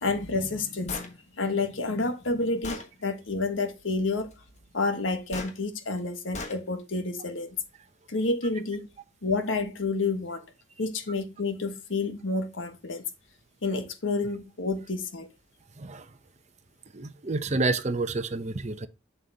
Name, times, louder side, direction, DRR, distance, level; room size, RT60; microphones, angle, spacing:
voice 1, 0.0-4.3 4.7-7.6 8.1-8.9 9.2-10.4 10.8-13.0 13.6-15.3, left 3 dB, 90° left, 1.3 m, -29 dB
Gunshot gunfire, 0.9-1.1 2.0-2.1 2.6-2.9 5.3-5.5 6.3-6.6, left 3 dB, 40° left, 1.3 m, -36 dB
voice 2, 16.9-18.9, right 3 dB, 35° right, 0.8 m, -29 dB
7.5 x 6.8 x 2.8 m
head